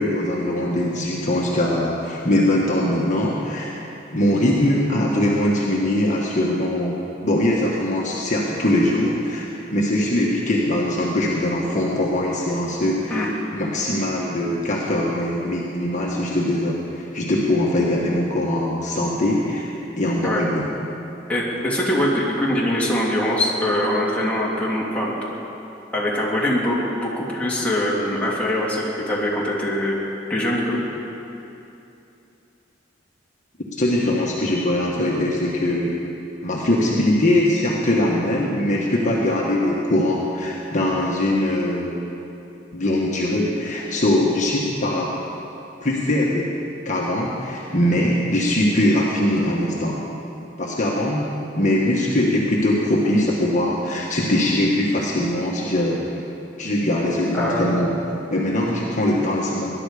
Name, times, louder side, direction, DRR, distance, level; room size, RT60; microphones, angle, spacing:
voice 1, 0.0-3.7 4.1-7.0 7.2-19.7 20.0-20.6 33.8-35.9 36.4-41.9 42.7-45.1 45.8-46.5 46.8-50.0 50.6-51.3 51.6-56.0 56.6-57.9 58.3-59.7, left 1 dB, 40° left, -3 dB, 1.5 m, -21 dB
voice 2, 21.3-25.1 25.9-30.0 30.3-30.8 57.3-57.8, left 1 dB, 5° left, -6 dB, 2.7 m, -23 dB
20.0 x 11.0 x 5.0 m, 2.8 s
head